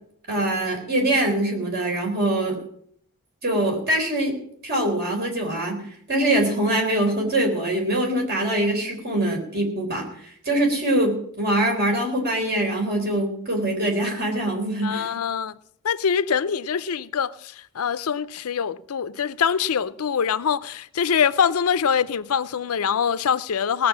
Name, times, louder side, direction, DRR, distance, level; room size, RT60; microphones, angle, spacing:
voice 1, 0.3-2.6 3.4-4.4 4.6-5.8 6.1-15.1, right 1 dB, 45° right, 3.9 m, -23 dB
voice 2, 14.8-15.5 15.8-23.9, left 7 dB, 80° left, 0.5 m, -24 dB
18.5 x 6.8 x 7.3 m
head